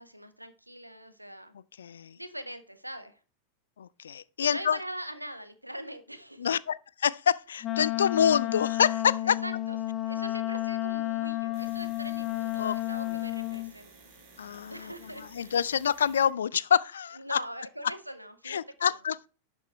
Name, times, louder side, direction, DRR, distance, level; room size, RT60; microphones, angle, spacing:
voice 1, 0.0-1.5 2.1-3.2 4.4-6.6 9.2-9.8 10.0-13.9 14.7-15.5 17.1-19.0, right 1 dB, 90° right, 1.2 m, -42 dB
voice 2, 1.8-2.2 3.8-4.8 6.4-9.4 12.6-12.7 14.4-14.9 15.3-17.4 18.5-19.3, left 8 dB, 65° left, 0.4 m, -27 dB
Wind instrument woodwind instrument, 7.6-13.7, left 17 dB, 30° left, 0.8 m, -31 dB
sound 1, 11.5-16.3, right 4 dB, 45° right, 3.5 m, -54 dB
11.0 x 5.4 x 4.5 m
figure-of-eight pair, 90°, 0 cm